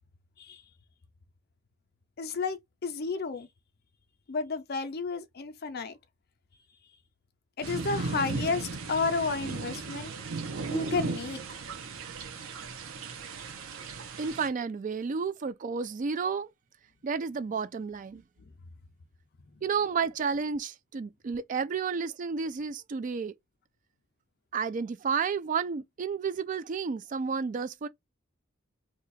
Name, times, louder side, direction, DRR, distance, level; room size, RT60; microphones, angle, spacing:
voice 1, 2.2-3.5 4.3-6.0 7.6-10.1 10.7-11.4, left 4 dB, 50° left, 0.5 m, -32 dB
sound 1, 7.6-14.5, right 3 dB, 85° right, 0.7 m, -36 dB
voice 2, 14.2-16.5 17.0-18.2 19.6-23.3 24.5-27.9, right 5 dB, 40° right, 0.3 m, -31 dB
2.8 x 2.3 x 4.1 m
head